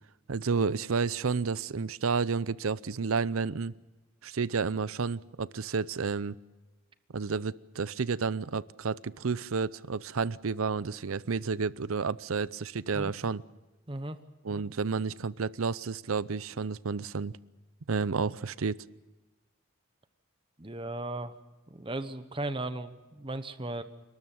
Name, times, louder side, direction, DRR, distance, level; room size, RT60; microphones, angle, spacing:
voice 1, 0.3-3.7 4.2-6.3 7.1-13.4 14.4-17.3 17.9-18.8, right 5 dB, 90° right, 0.7 m, -31 dB
voice 2, 13.9-14.2 20.6-21.4 21.7-23.8, right 2 dB, 25° right, 1.0 m, -36 dB
29.0 x 13.0 x 9.2 m
head